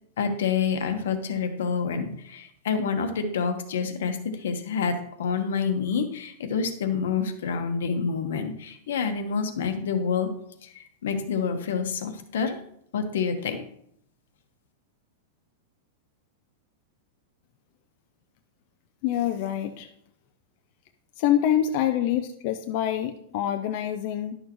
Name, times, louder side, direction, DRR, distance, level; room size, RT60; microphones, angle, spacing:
voice 1, 0.2-10.3 10.6-12.6 12.9-13.6, left 6 dB, 75° left, 7 dB, 1.1 m, -28 dB
voice 2, 19.0-19.9 21.2-24.4, left 11 dB, 35° left, 6 dB, 0.4 m, -26 dB
11.0 x 6.4 x 3.1 m, 0.70 s
supercardioid pair, 180°, 0 cm